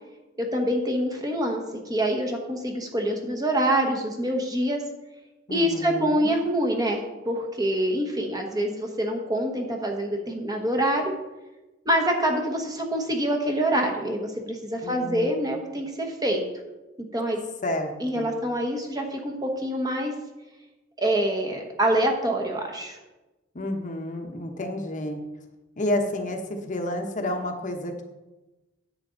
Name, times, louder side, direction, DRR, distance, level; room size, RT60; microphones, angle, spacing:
voice 1, 0.4-1.6 1.9-4.8 5.5-11.1 11.8-16.4 17.1-17.4 18.0-20.1 21.0-23.0, right 1 dB, 20° right, 2 dB, 1.2 m, -25 dB
voice 2, 5.5-6.4 14.8-15.6 17.6-18.4 23.5-25.2 25.8-28.0, left 1 dB, 40° left, 4 dB, 1.0 m, -30 dB
10.5 x 8.2 x 3.9 m, 1.1 s
head